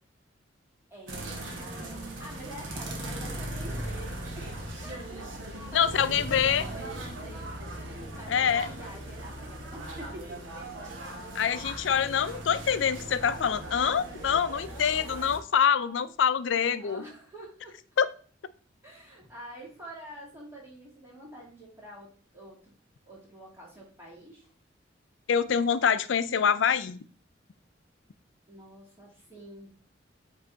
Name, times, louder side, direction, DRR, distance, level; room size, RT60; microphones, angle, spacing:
voice 1, 0.9-5.3 5.7-7.5 7.7-10.7 14.7-15.2 15.7-16.1 16.6-17.8 18.8-22.7 23.0-24.5 28.5-29.7, right 1 dB, 15° right, -5 dB, 2.7 m, -47 dB
sound 1, 1.1-15.4, right 1 dB, 85° right, 1.2 m, -38 dB
voice 2, 5.7-6.6 8.3-8.7 11.3-17.0 18.0-18.1 25.3-27.0, left 7 dB, 75° left, 14 dB, 0.5 m, -25 dB
8.0 x 3.3 x 3.9 m, 0.43 s
head